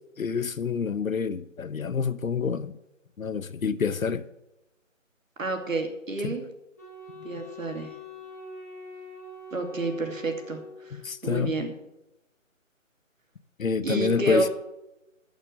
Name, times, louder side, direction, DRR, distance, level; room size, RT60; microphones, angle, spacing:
voice 1, 0.2-2.7 3.2-4.3 6.2-6.4 10.9-11.7 13.6-14.5, left 6 dB, 90° left, 0.9 m, -27 dB
voice 2, 5.4-6.4 7.2-7.9 9.5-11.0 11.2-11.7 13.8-14.5, right 2 dB, 75° right, 2.6 m, -29 dB
Wind instrument woodwind instrument, 6.8-11.2, left 2 dB, 10° left, 0.8 m, -44 dB
12.5 x 6.7 x 6.5 m
figure-of-eight pair, 170°, 40 cm